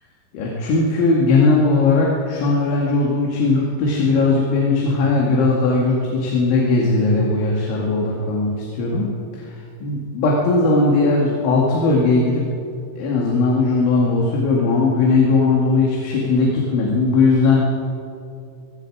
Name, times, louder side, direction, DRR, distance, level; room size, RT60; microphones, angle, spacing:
voice 1, 0.3-12.4 13.0-17.7, left 3 dB, 75° left, -3 dB, 4.8 m, -18 dB
24.0 x 23.5 x 5.0 m, 2.5 s
omnidirectional pair, 5.5 m